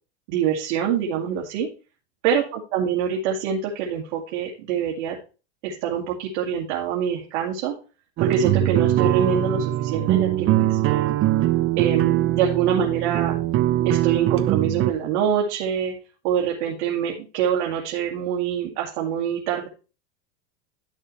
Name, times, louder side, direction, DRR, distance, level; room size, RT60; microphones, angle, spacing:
voice 1, 0.3-1.7 2.2-5.2 5.6-7.7 8.2-11.0 11.8-13.4 13.9-16.0 16.2-19.7, right 8 dB, 70° right, -1 dB, 2.2 m, -25 dB
sound 1, 8.2-14.9, right 13 dB, 40° right, 0.8 m, -21 dB
12.0 x 6.5 x 3.2 m, 0.34 s
supercardioid pair, 115°, 34 cm